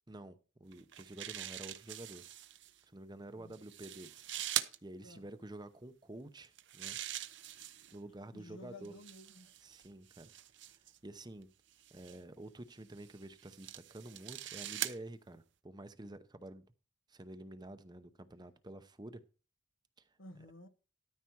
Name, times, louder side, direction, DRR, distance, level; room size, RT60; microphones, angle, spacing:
voice 1, 0.1-2.3 2.9-4.2 4.8-7.0 7.9-8.9 9.6-10.3 10.7-11.5 11.9-16.6 17.1-19.2 20.1-20.2, right 1 dB, 20° right, 0.7 m, -49 dB
sound 1, 0.7-2.7 3.5-4.8 6.4-8.0 8.9-11.0 11.8-12.2 13.0-15.0, right 12 dB, 65° right, 0.8 m, -42 dB
voice 2, 8.3-9.5 20.2-20.7, left 1 dB, 80° left, 1.3 m, -53 dB
13.0 x 5.8 x 4.6 m
head